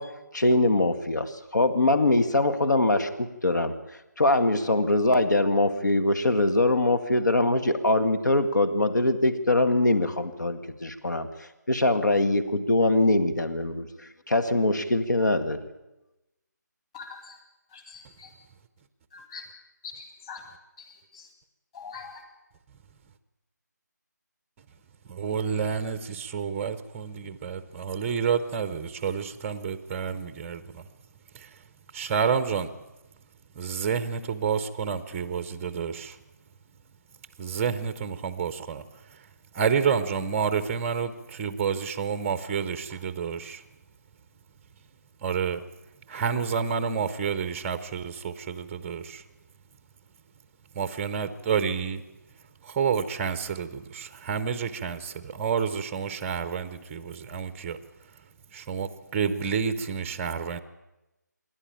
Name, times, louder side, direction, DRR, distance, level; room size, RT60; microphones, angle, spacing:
voice 1, 0.0-3.7 4.2-11.3 11.7-15.6, left 2 dB, 75° left, 9 dB, 1.9 m, -23 dB
voice 2, 16.9-17.4 17.7-18.3 19.1-19.5 19.8-20.4 20.8-21.3 21.7-22.2, left 5 dB, 20° left, 5 dB, 2.3 m, -43 dB
voice 3, 25.1-30.8 31.9-32.7 33.6-36.1 37.4-38.8 39.5-43.6 45.2-45.6 46.1-49.2 50.8-52.0 52.7-57.8 58.5-60.6, right 6 dB, 10° right, 11 dB, 0.6 m, -29 dB
26.5 x 11.0 x 8.8 m, 0.99 s
figure-of-eight pair, 160°, 10 cm